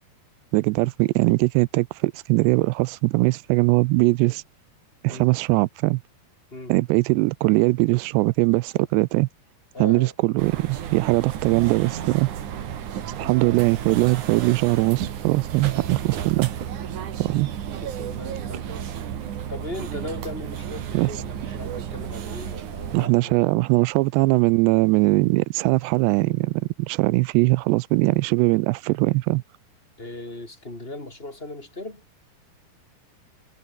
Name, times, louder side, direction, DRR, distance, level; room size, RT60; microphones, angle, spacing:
voice 1, 0.5-4.4 5.0-6.0 6.7-9.3 9.8-12.3 13.2-16.5 17.2-17.5 20.9-21.1 22.9-26.6 26.9-29.4, right 22 dB, 90° right, 2.8 m, -21 dB
voice 2, 9.7-10.1 11.2-11.3 13.2-13.4 17.1-17.2 17.8-18.9 19.5-23.4 30.0-32.0, left 2 dB, 15° left, 4.4 m, -38 dB
sound 1, 10.4-23.1, right 9 dB, 55° right, 3.1 m, -33 dB
omnidirectional pair, 4.8 m